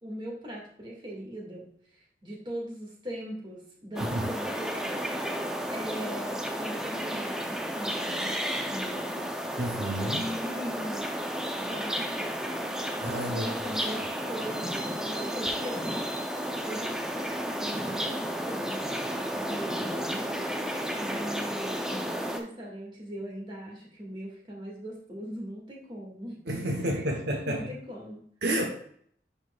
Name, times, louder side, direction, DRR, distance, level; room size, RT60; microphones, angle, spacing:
voice 1, 0.0-8.4 8.7-9.2 10.0-11.1 11.6-12.6 13.3-16.0 16.6-18.9 19.2-20.3 21.0-26.4 26.7-27.0 27.4-28.2, equal, 25° right, -3 dB, 1.8 m, -40 dB
sound 1, 4.0-22.4, equal, 5° right, 0.5 m, -32 dB
voice 2, 9.6-10.2 13.0-13.5 26.5-27.7 28.4-28.7, right 1 dB, 70° right, 2 dB, 0.9 m, -30 dB
10.5 x 4.5 x 2.3 m, 0.64 s
head